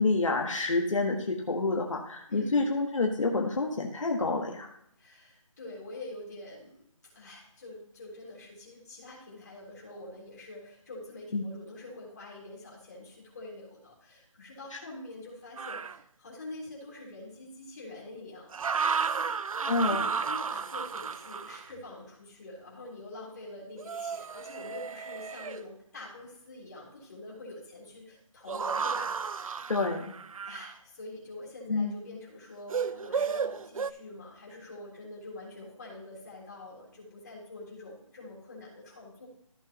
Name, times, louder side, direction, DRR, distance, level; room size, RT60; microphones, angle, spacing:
voice 1, 0.0-4.7 11.3-11.4 19.6-20.0 29.7-30.1 31.7-31.9, left 3 dB, 65° left, 0 dB, 1.5 m, -28 dB
voice 2, 2.3-2.7 5.0-6.8 7.1-18.6 18.8-19.3 19.8-29.7 30.4-39.3, left 2 dB, 30° left, -5 dB, 3.6 m, -45 dB
sound 1, 15.6-16.0 18.5-21.7 23.8-25.6 28.5-30.7 32.7-33.9, right 6 dB, 85° right, 0.5 m, -33 dB
14.5 x 6.1 x 2.9 m, 0.73 s
hypercardioid pair, 175°, 17 cm